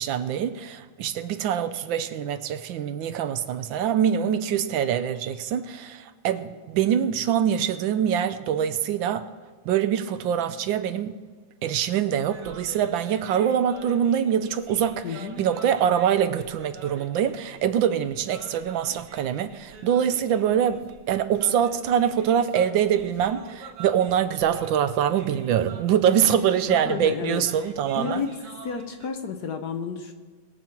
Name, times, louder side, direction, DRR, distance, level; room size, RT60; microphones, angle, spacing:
voice 1, 0.0-9.3 9.7-11.2 11.6-28.2, right 9 dB, 75° right, 1.3 m, -24 dB
sound 1, 12.2-29.1, right 3 dB, 60° right, 1.8 m, -46 dB
voice 2, 15.0-15.4 26.5-27.4 28.0-28.3 28.6-30.1, left 6 dB, 65° left, 1.1 m, -31 dB
22.0 x 7.5 x 4.4 m
omnidirectional pair, 2.3 m